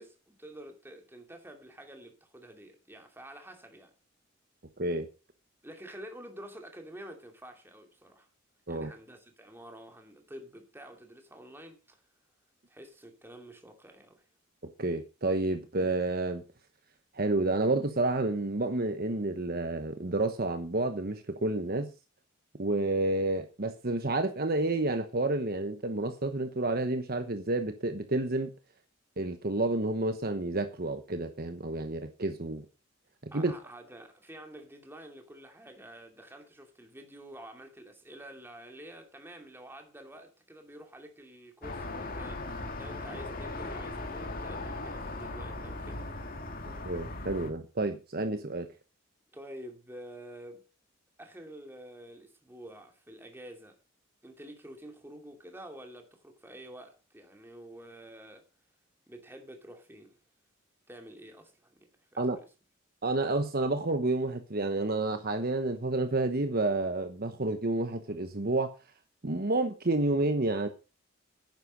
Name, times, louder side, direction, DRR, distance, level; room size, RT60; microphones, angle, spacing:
voice 1, 0.0-3.9 5.6-8.3 8.7-12.0 12.7-14.3 33.3-46.0 49.3-50.7 51.2-53.8 54.2-58.5 59.1-60.2 60.9-62.4, right 1 dB, 10° right, 2.6 m, -49 dB
voice 2, 4.8-5.1 8.7-8.9 14.8-16.4 17.1-21.9 22.6-28.5 29.2-32.6 33.2-33.5 46.8-48.7 62.2-62.4 63.0-68.7 69.2-70.7, right 2 dB, 45° right, 1.1 m, -30 dB
sound 1, 41.6-47.5, left 2 dB, 45° left, 2.1 m, -38 dB
11.0 x 9.9 x 5.2 m
head